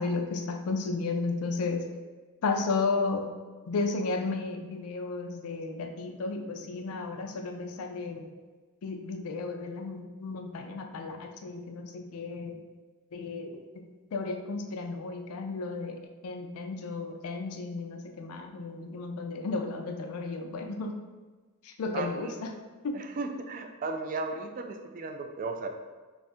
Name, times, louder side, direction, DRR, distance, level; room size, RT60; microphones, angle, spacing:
voice 1, 0.0-1.8 2.4-3.3 3.7-8.3 8.8-12.6 13.1-21.0 21.6-22.5 22.8-23.0, left 3 dB, 70° left, 4 dB, 0.4 m, -33 dB
voice 2, 21.9-22.3 22.9-25.7, right 3 dB, 40° right, 5 dB, 0.3 m, -35 dB
2.6 x 2.4 x 4.1 m, 1.3 s
head